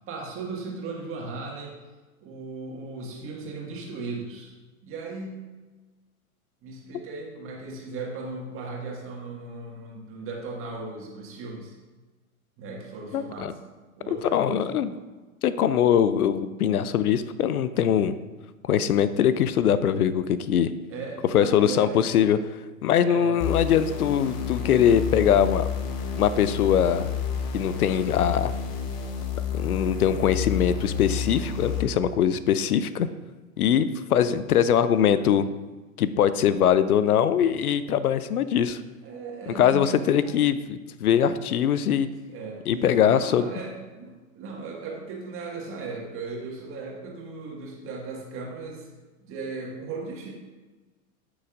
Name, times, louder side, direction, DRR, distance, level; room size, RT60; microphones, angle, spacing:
voice 1, 0.1-1.7 2.2-4.5 4.8-5.5 6.6-11.8 12.6-13.6 14.0-14.8 20.9-22.0 23.0-23.4 34.1-34.3 35.1-35.3 39.0-40.3 42.3-48.9 49.2-50.3, right 3 dB, 30° right, -1 dB, 1.7 m, -37 dB
voice 2, 13.1-13.5 14.1-14.9 15.4-18.1 18.6-20.7 21.3-22.4 22.8-25.7 26.2-27.1 27.5-28.5 29.6-33.1 33.6-35.5 36.0-38.8 39.5-42.1 42.7-43.5, left 9 dB, 85° left, 14 dB, 0.6 m, -22 dB
sound 1, 23.4-31.8, left 7 dB, 40° left, 1.1 m, -30 dB
9.5 x 6.2 x 2.5 m, 1.3 s
hypercardioid pair, 110°, 43 cm